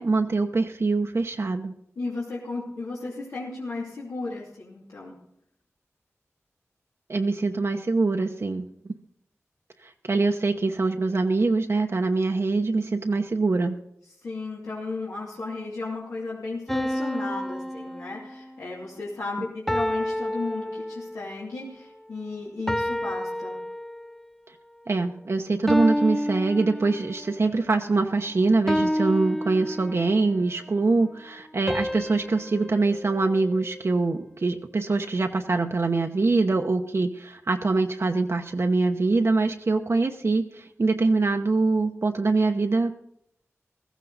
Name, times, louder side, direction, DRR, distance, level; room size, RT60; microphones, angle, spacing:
voice 1, 0.0-1.7 7.1-8.9 9.8-13.8 24.9-43.0, right 3 dB, 55° right, 4 dB, 0.9 m, -24 dB
voice 2, 2.0-5.2 14.2-23.6, left 3 dB, 85° left, -6 dB, 2.7 m, -34 dB
sound 1, 16.7-18.6 19.7-21.3 22.7-24.2 25.7-27.3 28.7-30.3 31.7-34.0, equal, 5° left, 0.5 m, -30 dB
15.5 x 14.0 x 4.1 m, 0.76 s
cardioid pair, 45°, 5 cm